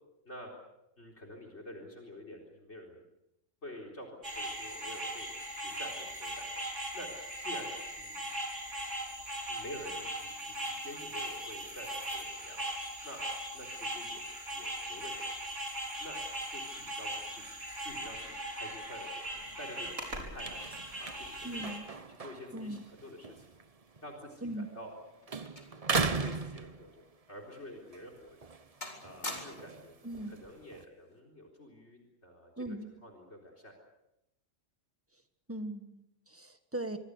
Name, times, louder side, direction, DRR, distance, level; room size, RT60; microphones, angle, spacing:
voice 1, 1.0-3.0 3.6-5.3 5.5-6.5 6.9-7.1 7.4-8.2 9.5-12.6 13.0-13.2 13.5-14.2 14.5-15.3 16.0-16.2 16.5-17.5 17.8-20.6 21.0-21.7 22.1-23.5 24.0-24.9 25.9-28.5 29.0-30.0 30.3-32.8 33.0-33.7, left 1 dB, 60° left, 4 dB, 4.4 m, -48 dB
sound 1, 4.2-21.8, right 1 dB, 80° right, 5.7 m, -39 dB
sound 2, 19.4-25.0 25.3-27.3 27.8-30.8, right 4 dB, 30° right, 1.0 m, -39 dB
voice 2, 21.4-21.8 22.5-22.9 24.4-24.7 30.0-30.4 32.6-32.9 35.5-37.0, right 1 dB, 10° right, 8 dB, 1.7 m, -39 dB
sound 3, 24.6-26.6 26.9-27.1 27.7-27.8 28.3-28.6 28.8-29.9 30.8-31.1, left 1 dB, 35° left, 3.9 m, -45 dB
26.0 x 24.0 x 6.6 m, 0.86 s
omnidirectional pair, 1.3 m